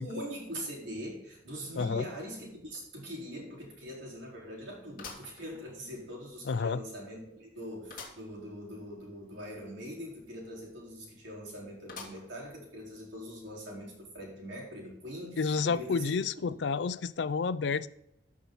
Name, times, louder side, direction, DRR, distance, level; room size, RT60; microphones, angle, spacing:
voice 1, 0.0-16.6, equal, 85° right, 4.3 m, -42 dB
sound 1, 2.7-2.8 3.3-3.4 5.0-6.1 6.6-6.7 7.9-8.3 8.7-8.8 9.0-9.1 11.9-12.5 13.1-13.2 14.2-14.3, left 4 dB, 50° left, 2.3 m, -47 dB
voice 2, 6.5-6.8 15.4-17.9, left 5 dB, 70° left, 0.4 m, -30 dB
13.5 x 6.1 x 4.0 m
head